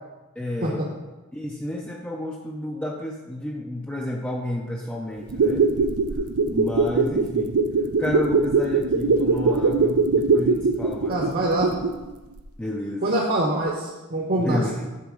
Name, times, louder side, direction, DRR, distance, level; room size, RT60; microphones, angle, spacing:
voice 1, 0.4-0.9 1.3-5.9 6.4-7.6 8.0-11.5 12.6-13.2 14.4-14.9, left 1 dB, 5° left, -2 dB, 0.5 m, -31 dB
sound 1, 5.2-12.1 12.4-12.5, right 4 dB, 70° right, 0.5 m, -21 dB
voice 2, 11.1-11.7 13.0-14.6, right 1 dB, 45° right, -2 dB, 1.0 m, -24 dB
6.9 x 4.1 x 6.3 m, 1.1 s
head